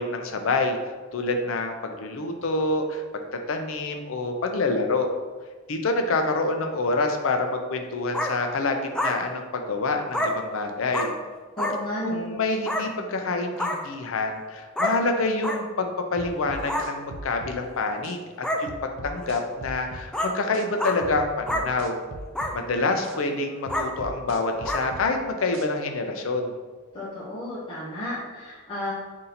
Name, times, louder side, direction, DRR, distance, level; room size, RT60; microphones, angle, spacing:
voice 1, 0.0-3.2 3.5-5.1 5.7-11.1 12.0-18.7 19.0-22.0 22.5-26.6, left 3 dB, 70° left, 5 dB, 0.5 m, -27 dB
sound 1, 8.1-8.3 8.9-9.1 10.1-10.3 10.9-11.1 11.6-11.7 12.7-12.8 13.6-13.8 14.8-14.9 15.4-15.6 16.6-16.9 17.7-17.8 18.4-18.6 19.2-19.3 20.1-20.3 20.8-21.0 21.5-21.6 22.3-22.5 23.1-23.2 23.7-23.9 24.6-24.8, left 1 dB, 5° left, 0.3 m, -27 dB
voice 2, 11.6-12.4 26.9-28.9, left 1 dB, 25° left, -9 dB, 0.9 m, -32 dB
sound 2, 16.2-17.6 18.0-18.2 18.7-20.1 20.5-20.7 21.0-22.6 23.0-23.2 23.7-25.1 25.5-25.7, right 2 dB, 65° right, 0.4 m, -39 dB
3.8 x 2.7 x 4.1 m, 1.4 s
head